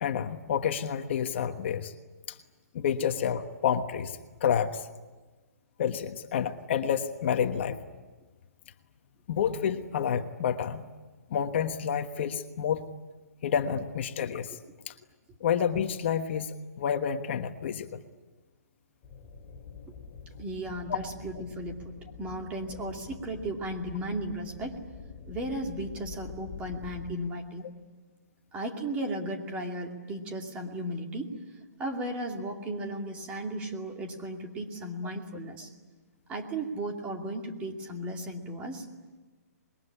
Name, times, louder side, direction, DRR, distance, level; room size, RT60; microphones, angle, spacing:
voice 1, 0.0-1.9 2.3-2.4 2.7-4.9 5.8-7.8 9.3-10.9 11.3-12.9 13.4-14.6 14.9-15.0 15.4-18.0 20.9-21.0, left 8 dB, 45° left, 7 dB, 1.3 m, -29 dB
sound 1, 19.0-27.1, left 5 dB, 25° left, 3.0 m, -46 dB
voice 2, 20.4-24.8 25.3-27.7 28.5-31.3 31.8-35.7 36.3-38.9, right 1 dB, 15° right, 2 dB, 2.5 m, -35 dB
26.5 x 22.0 x 9.9 m, 1.3 s
hypercardioid pair, 160°, 9 cm